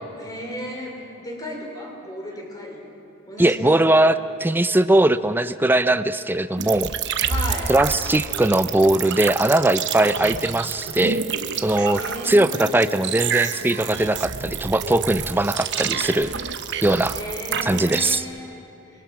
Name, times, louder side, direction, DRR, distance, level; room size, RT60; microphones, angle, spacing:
voice 1, 0.2-2.8 3.3-3.9 7.2-7.7 11.9-12.8 17.1-18.5, left 1 dB, 20° left, 0 dB, 4.0 m, -34 dB
voice 2, 3.4-6.9 7.7-11.2 11.6-16.3 16.8-17.2 17.6-18.3, right 1 dB, 10° right, 13 dB, 0.5 m, -20 dB
sound 1, 6.6-18.2, right 7 dB, 60° right, 1.0 m, -28 dB
27.5 x 22.5 x 5.9 m, 2.7 s
head